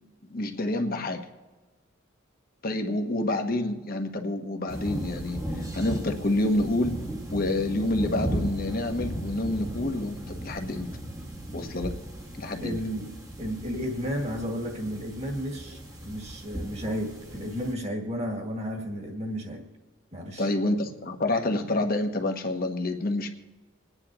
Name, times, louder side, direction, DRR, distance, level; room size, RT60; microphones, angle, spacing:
voice 1, 0.3-1.2 2.6-6.9 7.3-10.9 11.5-11.9 12.4-12.8 20.4-23.3, left 2 dB, 45° left, 5 dB, 1.2 m, -28 dB
sound 1, 4.7-17.7, right 1 dB, 15° right, 1.3 m, -36 dB
voice 2, 12.6-13.1 13.4-19.6 20.1-20.4, equal, 35° right, 2 dB, 2.0 m, -33 dB
27.5 x 9.9 x 3.0 m, 1.2 s
head